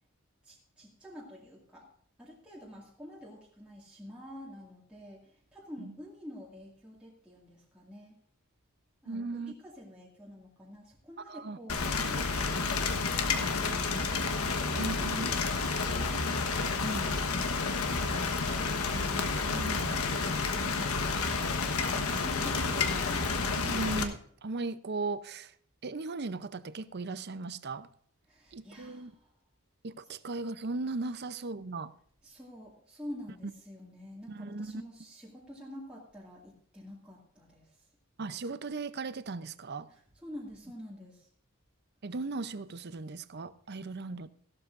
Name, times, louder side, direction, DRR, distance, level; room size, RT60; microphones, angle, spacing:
voice 1, 0.4-1.9 2.2-8.2 9.0-12.7 13.0-15.4 20.4-23.3 28.3-29.3 32.2-37.8 39.9-41.3 43.9-44.0, left 1 dB, 5° right, 2.1 m, -48 dB
voice 2, 9.1-9.5 11.3-11.6 12.0-12.1 14.8-15.3 16.8-17.2 18.9-20.3 20.6-21.1 23.6-25.5 25.8-27.9 28.5-29.1 29.8-31.9 33.4-33.5 34.3-34.8 38.2-39.9 42.0-44.3, right 3 dB, 50° right, 0.6 m, -37 dB
Rain, 11.7-24.0, left 4 dB, 85° left, 1.3 m, -30 dB
15.5 x 12.0 x 2.6 m
head